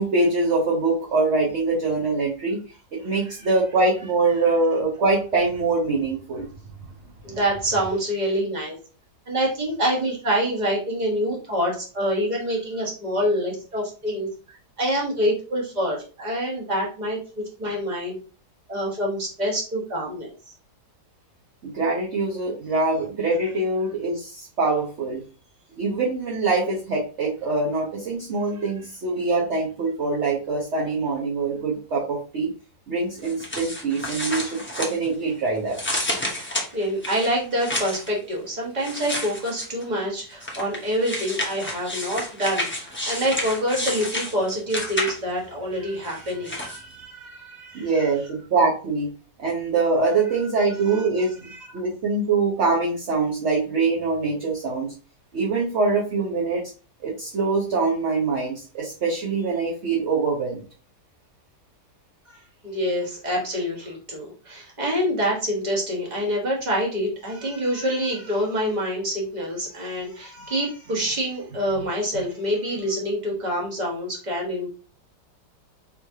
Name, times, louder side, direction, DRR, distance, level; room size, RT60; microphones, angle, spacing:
voice 1, 0.0-2.6 2.9-6.5 7.3-7.4 7.9-8.0 21.6-25.2 25.8-32.5 32.9-35.8 47.7-49.1 49.4-54.9 55.3-56.6 57.0-60.6, right 3 dB, 50° right, -3 dB, 1.0 m, -24 dB
voice 2, 7.2-8.8 9.3-14.3 14.8-18.2 18.7-20.3 34.2-34.5 36.7-47.9 50.8-51.1 51.5-51.8 62.3-74.7, equal, 25° right, -2 dB, 1.4 m, -26 dB
sound 1, 33.2-35.3 35.7-38.1 38.8-39.8 40.4-45.4 46.0-46.8, left 1 dB, 15° left, 0.5 m, -30 dB
4.6 x 3.2 x 2.7 m, 0.37 s
omnidirectional pair, 1.9 m